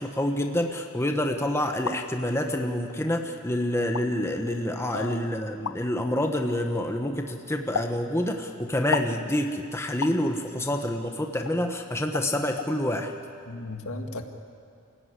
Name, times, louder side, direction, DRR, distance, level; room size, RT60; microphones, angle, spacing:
voice 1, 0.0-13.1, left 1 dB, 10° left, 4 dB, 1.2 m, -27 dB
sound 1, 1.6-2.0 2.9-3.0 3.8-4.1 5.6-5.8 7.7-8.0 8.9-9.2 10.0-10.2 11.5-11.6 12.1-12.3 12.6-12.7, left 5 dB, 85° left, 0.9 m, -31 dB
voice 2, 13.5-14.2, left 2 dB, 65° left, 5 dB, 2.0 m, -34 dB
28.5 x 16.5 x 9.8 m, 2.4 s
head